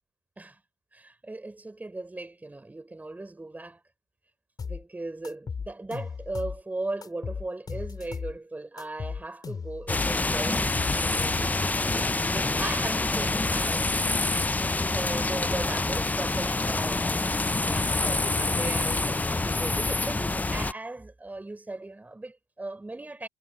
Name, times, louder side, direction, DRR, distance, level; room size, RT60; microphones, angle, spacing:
voice 1, 0.9-3.8 4.6-14.2 14.9-17.0 17.7-23.3, right 2 dB, 15° right, 5.7 m, -38 dB
sound 1, 4.6-4.8 5.2-6.6 7.0-8.4 8.8-10.1 10.5-11.7, left 5 dB, 35° left, 6.4 m, -36 dB
sound 2, 9.9-20.7, left 2 dB, 15° left, 0.8 m, -26 dB
hypercardioid pair, 65°, 12 cm